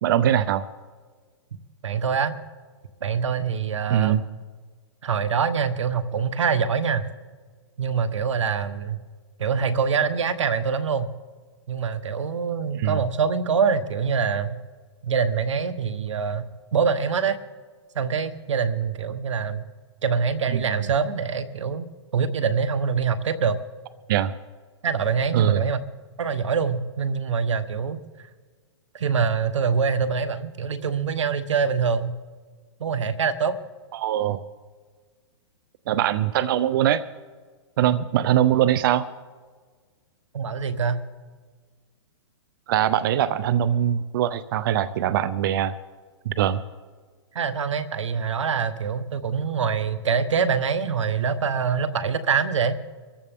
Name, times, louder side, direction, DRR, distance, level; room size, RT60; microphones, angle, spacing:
voice 1, 0.0-0.7 3.9-4.2 12.7-13.0 20.5-20.6 24.1-24.4 25.3-25.6 33.9-34.4 35.9-37.0 37.8-39.1 42.7-45.7 46.3-46.6, right 11 dB, 45° right, 14 dB, 0.5 m, -22 dB
voice 2, 1.8-2.4 3.0-4.2 5.0-7.1 7.8-9.0 9.4-11.1 11.7-14.6 15.0-17.4 17.9-19.7 20.0-21.9 22.1-23.6 24.8-25.8 26.2-28.0 28.9-32.1 32.8-33.5 40.3-41.0 47.3-52.8, right 6 dB, 85° right, 12 dB, 1.2 m, -24 dB
23.5 x 14.5 x 3.6 m, 1.5 s
hypercardioid pair, 150°, 15 cm